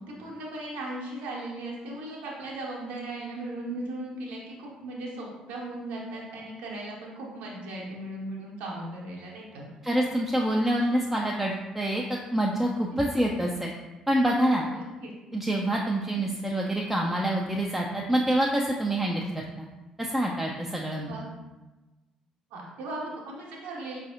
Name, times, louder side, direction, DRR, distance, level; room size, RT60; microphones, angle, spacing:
voice 1, 0.1-9.7 12.9-13.1 14.6-15.1 21.1-21.3 22.5-24.0, right 2 dB, 60° right, -3 dB, 0.7 m, -37 dB
voice 2, 9.8-13.7 14.1-14.6 15.3-19.3 19.6-19.7 20.0-21.2, right 1 dB, 5° right, -2 dB, 0.4 m, -26 dB
4.7 x 2.5 x 2.5 m, 1.1 s
figure-of-eight pair, 45°, 3 cm